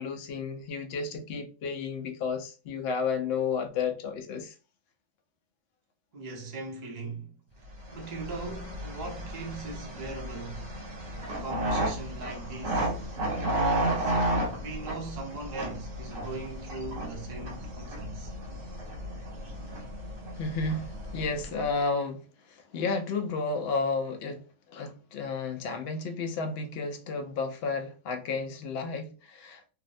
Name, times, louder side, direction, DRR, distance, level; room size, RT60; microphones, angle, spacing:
voice 1, 0.0-4.5 20.4-22.2 22.5-24.4 24.7-29.7, left 4 dB, 65° left, 0.6 m, -32 dB
voice 2, 6.1-7.4 7.9-10.8 11.3-13.0 13.3-18.3, right 3 dB, 40° right, 0.6 m, -40 dB
sound 1, 7.8-21.7, right 1 dB, 70° right, 1.2 m, -33 dB
2.7 x 2.0 x 2.5 m
omnidirectional pair, 1.5 m